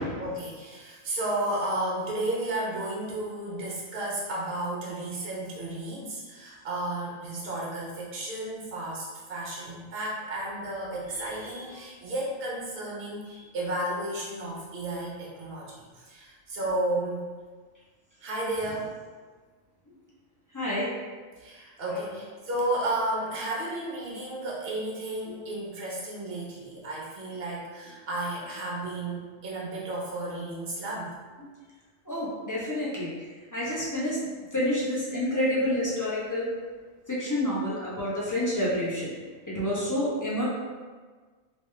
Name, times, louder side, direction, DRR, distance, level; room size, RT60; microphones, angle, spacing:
voice 1, 0.2-17.2 18.2-18.9 21.4-31.1 39.6-39.9, right 1 dB, 50° right, -5 dB, 1.0 m, -33 dB
voice 2, 20.5-20.9 21.9-22.1 25.2-25.3 32.1-34.2 34.5-36.5 37.1-39.1 39.5-40.4, left 1 dB, 20° left, -8 dB, 0.6 m, -29 dB
3.2 x 2.6 x 3.3 m, 1.4 s
omnidirectional pair, 1.4 m